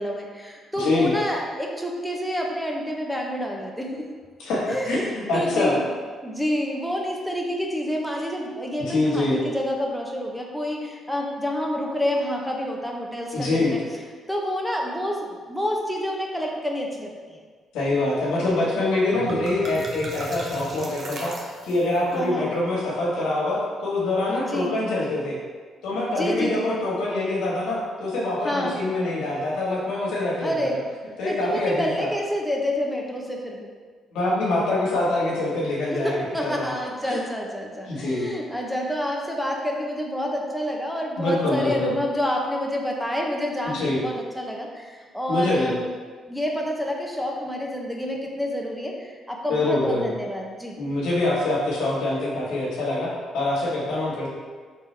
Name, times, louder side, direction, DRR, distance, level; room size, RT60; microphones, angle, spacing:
voice 1, 0.0-4.1 4.7-5.8 6.2-13.8 14.3-17.4 22.1-22.5 24.5-24.7 26.2-26.8 28.4-28.8 30.4-30.8 31.2-33.7 35.9-45.8 46.3-50.8, equal, ahead, -1 dB, 0.7 m, -28 dB
voice 2, 0.8-1.1 4.4-5.7 8.8-9.4 13.3-13.7 17.7-25.4 25.8-30.7 31.2-32.1 34.1-36.7 37.0-37.2 37.9-38.3 41.2-41.9 43.6-44.0 45.3-45.7 49.5-50.1 50.8-54.3, left 2 dB, 90° left, -5 dB, 1.4 m, -25 dB
sound 1, 18.6-18.7 18.9-22.0, right 2 dB, 50° right, 0.8 m, -37 dB
4.6 x 3.5 x 3.3 m, 1.5 s
cardioid pair, 90°, 0 cm